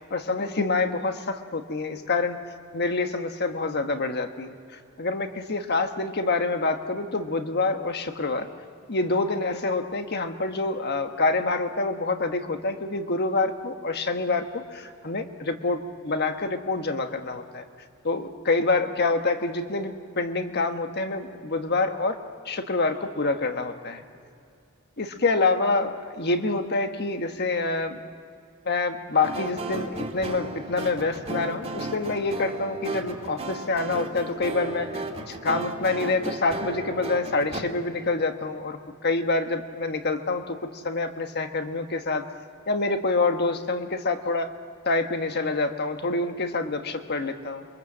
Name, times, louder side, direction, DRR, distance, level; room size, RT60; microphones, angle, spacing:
voice 1, 0.1-2.4 2.7-8.5 8.9-17.6 18.0-22.2 22.4-24.0 25.0-28.0 28.6-42.2 42.7-44.5 44.8-47.7, left 3 dB, 50° left, 7 dB, 1.4 m, -27 dB
sound 1, 29.2-37.6, right 2 dB, 30° right, 2.3 m, -34 dB
27.5 x 23.5 x 7.5 m, 2.4 s
head